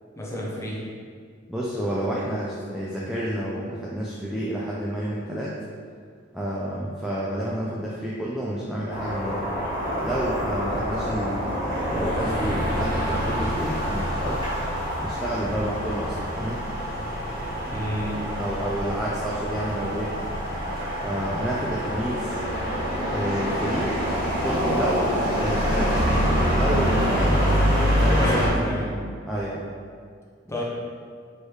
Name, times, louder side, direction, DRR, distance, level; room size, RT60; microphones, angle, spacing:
voice 1, 0.2-0.9 17.7-18.3 28.1-28.9 30.5-30.6, equal, 15° left, -5 dB, 0.7 m, -30 dB
voice 2, 1.5-5.5 6.3-9.5 10.0-14.5 15.0-16.6 18.4-20.2 21.0-22.4 23.1-24.0 24.4-27.4 27.7-28.8 29.3-29.7, right 1 dB, ahead, -7 dB, 0.3 m, -29 dB
sound 1, 8.9-28.5, equal, 20° right, 1.4 m, -26 dB
4.4 x 3.1 x 3.2 m, 2.1 s
head